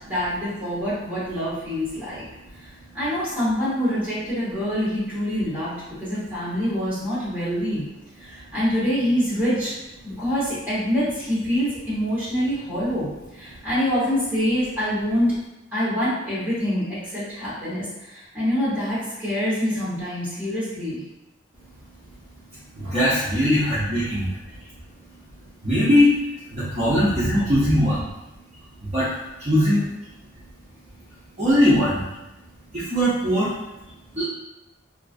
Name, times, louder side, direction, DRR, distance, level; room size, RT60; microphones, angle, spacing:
voice 1, 0.1-2.2 2.9-5.7 6.0-7.8 8.2-9.7 10.0-13.1 13.3-15.3 15.7-21.0 27.3-27.4, equal, 10° right, -12 dB, 1.1 m, -25 dB
voice 2, 22.7-24.3 25.6-26.1 26.5-28.1 28.8-29.1 29.4-29.9 31.4-32.0 32.7-33.5 34.1-34.2, equal, 30° right, -11 dB, 0.5 m, -20 dB
2.4 x 2.3 x 2.4 m, 0.97 s
head